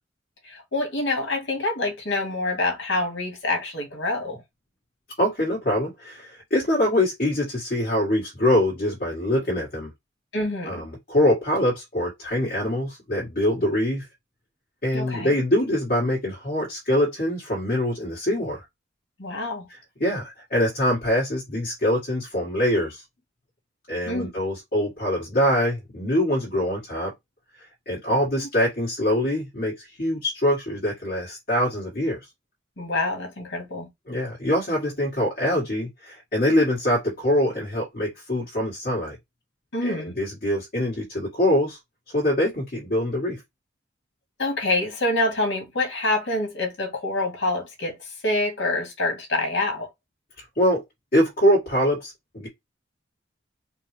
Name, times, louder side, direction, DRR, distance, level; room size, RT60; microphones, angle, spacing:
voice 1, 0.4-4.4 10.3-10.9 14.9-15.3 19.2-19.7 24.1-24.3 28.4-28.5 32.8-33.9 39.7-40.2 44.4-49.9, left 2 dB, 75° left, 1.6 m, -26 dB
voice 2, 5.2-9.9 10.6-14.0 14.8-18.6 20.0-23.0 23.9-27.1 27.9-32.2 34.1-39.2 39.8-41.8 42.1-43.4 50.5-50.8 51.1-52.5, left 1 dB, 50° left, 1.6 m, -24 dB
4.3 x 2.1 x 3.1 m
head